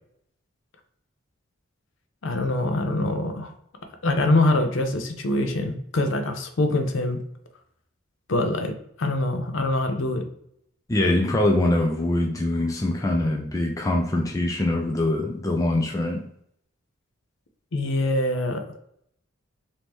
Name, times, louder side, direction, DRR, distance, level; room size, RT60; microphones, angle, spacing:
voice 1, 2.2-3.5 4.0-7.2 8.3-10.2 17.7-18.6, left 2 dB, 65° left, 5 dB, 0.5 m, -24 dB
voice 2, 10.9-16.2, left 1 dB, 15° left, 1 dB, 0.4 m, -23 dB
3.5 x 2.7 x 3.0 m, 0.71 s
head